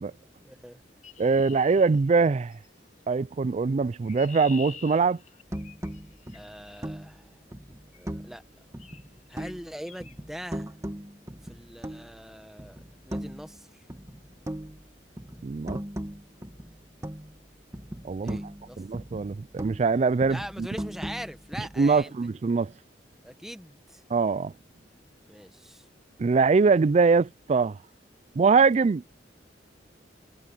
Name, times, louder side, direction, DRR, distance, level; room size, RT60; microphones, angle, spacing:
voice 1, 0.4-0.8 6.3-7.4 7.9-8.6 9.3-10.7 11.4-12.8 13.0-13.9 18.2-18.8 20.3-22.1 23.2-24.0 25.3-25.8, equal, ahead, 1.3 m, -42 dB
Chirp tweet, 1.0-2.7 3.7-6.8 7.9-8.2 8.8-9.1 9.3-9.5 9.9-10.2, left 6 dB, 40° left, 2.1 m, -47 dB
voice 2, 1.2-2.5 3.1-5.2 15.4-15.8 18.0-18.4 18.8-20.7 21.8-22.7 24.1-24.5 26.2-27.8 28.4-29.0, right 4 dB, 40° right, 0.4 m, -23 dB
sound 1, 5.5-8.4 8.7-9.7 10.0-12.2 12.6-13.6 13.9-17.5 17.7-19.9 20.2-22.0, equal, 20° right, 1.6 m, -39 dB
head